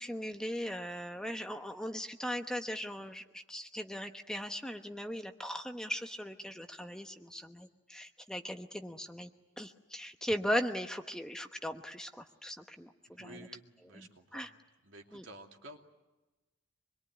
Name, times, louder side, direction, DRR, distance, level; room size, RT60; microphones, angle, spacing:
voice 1, 0.0-9.3 9.6-13.5 13.9-14.5 15.1-15.2, equal, 5° left, 5 dB, 1.0 m, -38 dB
voice 2, 13.0-14.5 14.8-15.8, right 2 dB, 70° right, 3 dB, 2.8 m, -52 dB
26.5 x 22.0 x 9.7 m, 1.1 s
head